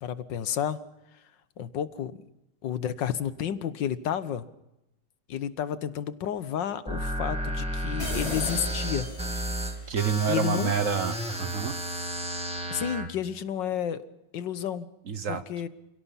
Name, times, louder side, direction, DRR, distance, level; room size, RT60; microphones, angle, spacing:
voice 1, 0.0-0.8 1.6-2.2 2.6-4.5 5.3-9.1 10.3-10.7 12.7-14.0 14.3-14.9 15.3-15.7, left 9 dB, 90° left, 13 dB, 1.8 m, -31 dB
sound 1, 6.9-13.1, right 1 dB, 5° right, 1.9 m, -32 dB
sound 2, 8.0-9.8, left 2 dB, 35° left, 5.5 m, -36 dB
voice 2, 9.9-11.7 15.1-15.4, right 7 dB, 50° right, 12 dB, 1.3 m, -28 dB
28.5 x 17.0 x 5.8 m, 0.91 s
omnidirectional pair, 1.9 m